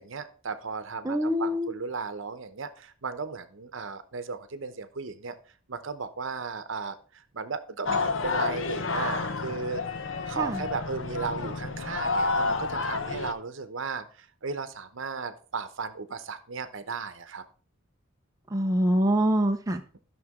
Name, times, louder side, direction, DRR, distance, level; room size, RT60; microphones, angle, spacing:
voice 1, 0.0-5.4 5.7-9.8 10.3-17.4, right 4 dB, 65° right, 11 dB, 0.9 m, -35 dB
voice 2, 1.0-1.7 10.3-10.6 18.5-19.8, equal, 15° right, 4 dB, 0.6 m, -25 dB
sound 1, 7.9-13.3, left 3 dB, 65° left, 0.8 m, -30 dB
12.5 x 6.2 x 3.6 m, 0.41 s
head